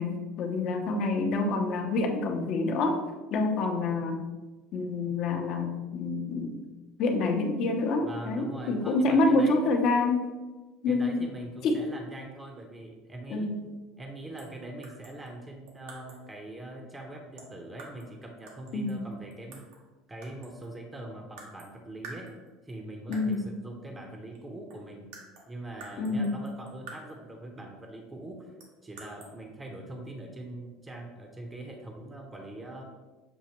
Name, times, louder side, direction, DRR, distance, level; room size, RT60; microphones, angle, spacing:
voice 1, 0.0-3.0 3.3-4.2 4.7-6.6 7.0-10.3 10.8-11.3 11.6-11.8 13.3-13.7 18.7-19.1 23.1-23.5 26.0-26.4, left 3 dB, 55° left, 3 dB, 0.7 m, -27 dB
voice 2, 8.0-9.8 10.9-13.5 14.0-19.7 20.1-22.3 22.6-25.1 25.5-28.5 28.8-32.8, right 1 dB, 15° right, 2 dB, 0.7 m, -42 dB
sound 1, 14.4-14.6 14.8-16.3 17.4-18.2 18.5-19.9 20.2-20.8 21.4-21.7 22.0-22.7 23.1-23.5 24.3-24.4 24.7-27.3 28.6-29.3, right 3 dB, 85° right, 1.0 m, -49 dB
6.9 x 2.5 x 2.9 m, 1.2 s
supercardioid pair, 115°, 0 cm